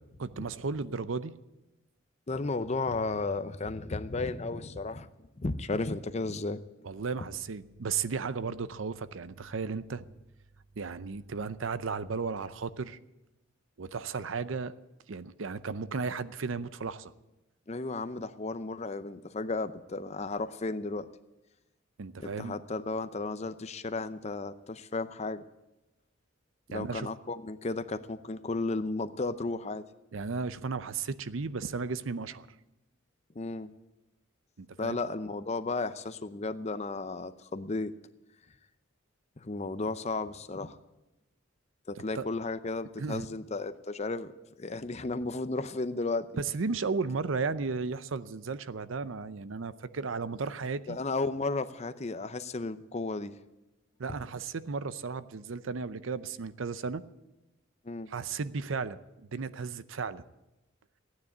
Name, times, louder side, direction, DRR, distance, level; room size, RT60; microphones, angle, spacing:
voice 1, 0.2-1.3 6.8-10.0 10.8-13.0 13.8-14.7 15.1-17.1 22.0-22.6 26.7-27.1 30.1-32.5 34.6-35.0 42.1-42.2 43.0-43.3 46.4-51.0 54.0-57.0 58.1-60.2, right 4 dB, 75° right, 15 dB, 0.6 m, -34 dB
voice 2, 2.3-6.6 17.7-21.1 22.2-25.4 26.7-29.8 33.3-33.7 34.8-37.9 39.4-40.8 41.9-44.3 44.6-46.3 50.9-53.3 57.8-58.1, left 3 dB, 35° left, 11 dB, 0.6 m, -34 dB
14.5 x 9.6 x 8.6 m, 0.98 s
head